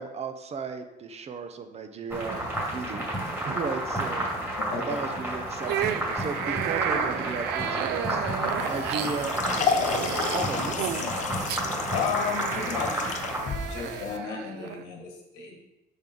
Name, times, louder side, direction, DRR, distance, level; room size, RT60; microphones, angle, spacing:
voice 1, 0.0-3.1 3.5-4.3 4.7-8.3 8.7-9.9 10.3-10.8, right 4 dB, 40° right, 8 dB, 0.7 m, -35 dB
sound 1, 2.1-13.4, right 1 dB, 15° right, 2.5 m, -31 dB
voice 2, 4.6-5.0 10.8-11.3 11.9-13.1 13.6-15.6, left 6 dB, 90° left, 2 dB, 1.6 m, -33 dB
sound 2, 5.6-14.8, right 10 dB, 80° right, 0.5 m, -33 dB
sound 3, 8.6-14.2, left 6 dB, 45° left, 0.6 m, -32 dB
6.0 x 5.3 x 3.9 m, 0.96 s
cardioid pair, 110°, 17 cm